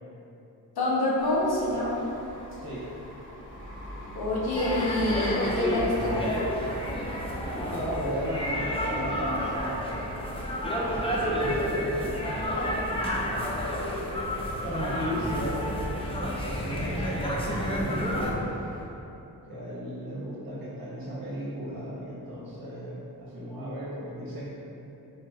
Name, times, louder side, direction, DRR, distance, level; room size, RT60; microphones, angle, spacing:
voice 1, 0.8-2.0 4.2-6.3, left 1 dB, 70° left, -6 dB, 0.9 m, -27 dB
sound 1, 1.2-18.8, equal, 30° left, 1.0 m, -44 dB
sound 2, 4.5-18.3, equal, 15° left, 0.5 m, -30 dB
voice 2, 7.5-9.7 10.9-13.4 14.6-15.6 16.0-18.5 19.5-24.5, equal, 60° right, -8 dB, 1.1 m, -36 dB
3.2 x 3.1 x 2.4 m, 2.9 s
cardioid pair, 60°, 40 cm